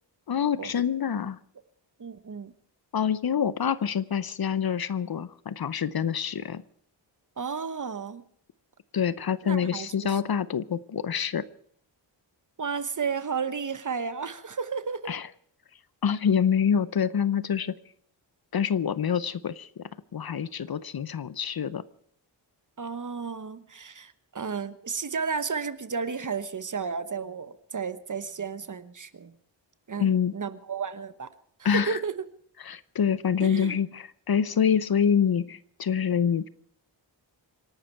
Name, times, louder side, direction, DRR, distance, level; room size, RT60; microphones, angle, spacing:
voice 1, 0.3-1.4 2.9-6.6 8.9-11.5 15.1-15.3 16.0-17.8 18.5-19.8 20.1-21.8 30.0-30.4 31.6-32.0 32.6-36.5, left 7 dB, 55° left, 17 dB, 0.7 m, -26 dB
voice 2, 2.0-2.5 7.4-8.2 9.4-10.2 12.6-15.2 22.8-29.3 29.9-31.3 31.7-32.3 33.4-33.8, right 5 dB, 40° right, 13 dB, 1.1 m, -33 dB
26.5 x 12.0 x 4.5 m, 0.63 s
wide cardioid pair, 145°, 45 cm